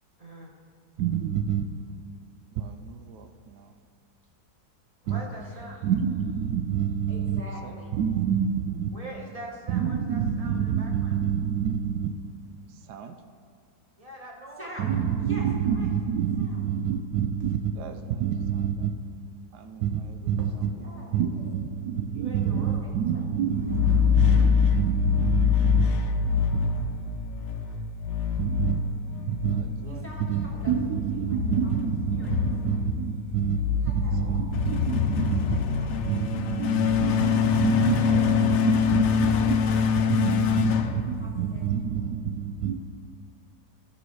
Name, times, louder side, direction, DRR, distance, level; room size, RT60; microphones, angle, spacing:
voice 1, 0.2-0.5 5.0-5.8 8.9-11.1 14.0-14.7 22.1-22.8 38.4-38.7, right 1 dB, 25° right, -2 dB, 1.4 m, -43 dB
voice 2, 1.0-1.6 2.5-3.7 5.1-5.2 5.8-8.9 9.7-12.1 12.9-13.2 14.8-18.9 19.5-25.9 28.4-28.8 29.3-33.6 33.9-35.6 36.1-39.6 40.1-42.7, right 8 dB, 80° right, 7 dB, 1.1 m, -28 dB
voice 3, 7.1-7.9 14.6-14.9 15.2-15.4 15.7-15.9 16.4-16.6 20.4-21.3 22.5-22.9 23.5-23.7 27.6-27.8 29.8-30.7 31.3-31.4 31.6-31.7 32.1-32.3 33.5-34.4 35.5-36.5 37.0-37.2 37.8-38.6 39.3-39.4 39.7-39.8 40.2-40.6 40.9-41.6, equal, 10° left, -4 dB, 1.3 m, -46 dB
sound 1, 23.6-41.7, left 7 dB, 65° left, 0.7 m, -25 dB
15.0 x 6.2 x 3.2 m, 2.2 s
omnidirectional pair, 1.7 m